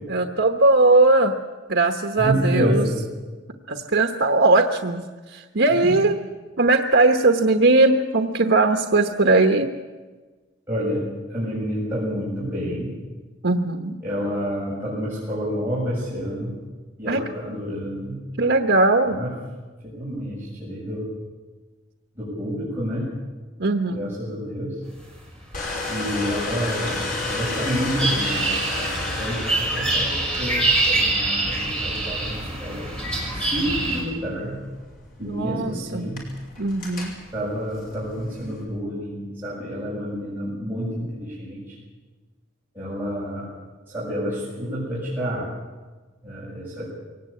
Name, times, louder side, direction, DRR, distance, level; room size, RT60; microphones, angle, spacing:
voice 1, 0.1-1.4 1.7-2.9 3.7-6.1 6.6-9.7 13.4-14.0 17.1-17.2 18.4-19.2 23.6-24.1 35.2-36.1 36.6-37.1, right 2 dB, 65° right, 5 dB, 1.1 m, -19 dB
voice 2, 2.2-3.0 5.8-6.0 10.7-12.9 14.0-16.6 17.0-18.3 19.1-19.3 19.8-21.1 22.2-23.2 23.9-24.8 25.9-32.9 33.3-34.6 35.2-36.3 37.3-41.7 42.7-43.5 43.9-45.5 46.2-46.8, equal, 10° right, -9 dB, 7.5 m, -29 dB
sound 1, 25.2-34.0, right 2 dB, 5° left, 6.4 m, -26 dB
Domestic sounds home sounds, 25.5-38.6, left 3 dB, 45° left, 5.8 m, -34 dB
22.5 x 18.5 x 8.6 m, 1.3 s
head